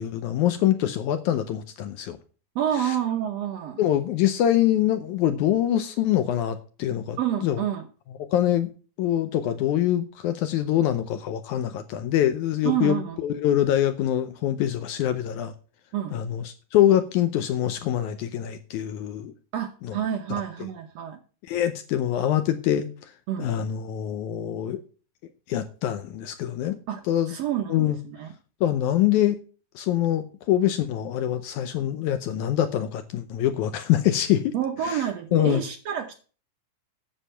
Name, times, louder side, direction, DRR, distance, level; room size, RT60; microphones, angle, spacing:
voice 1, 0.0-2.2 2.8-3.0 3.8-7.6 8.3-8.7 9.0-15.5 16.1-19.3 19.8-19.9 21.5-23.1 23.4-24.8 25.5-26.8 27.1-27.3 27.7-28.0 28.6-29.4 29.8-34.5 34.8-35.0 35.3-35.6, left 11 dB, 75° left, 10 dB, 1.9 m, -24 dB
voice 2, 2.5-3.8 7.2-7.9 12.6-13.2 15.9-16.2 19.5-21.2 23.3-23.5 26.9-28.3 34.5-36.2, right 10 dB, 70° right, 5 dB, 1.7 m, -28 dB
10.0 x 7.4 x 5.6 m, 0.38 s
omnidirectional pair, 3.9 m